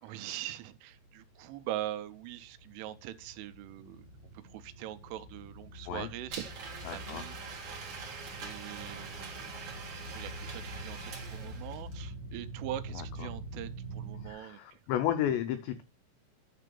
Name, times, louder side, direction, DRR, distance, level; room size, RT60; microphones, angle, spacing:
voice 1, 0.0-4.1 4.3-8.1 8.4-9.5 10.0-14.8, right 13 dB, 85° right, 3.1 m, -42 dB
sound 1, 0.9-14.3, right 2 dB, 55° left, 1.5 m, -45 dB
Domestic sounds home sounds, 6.3-12.0, right 5 dB, 55° right, 1.7 m, -44 dB
voice 2, 6.9-7.2 7.6-7.7 13.0-13.3 14.2-15.8, left 11 dB, 80° left, 2.6 m, -33 dB
9.9 x 3.8 x 6.8 m
omnidirectional pair, 5.8 m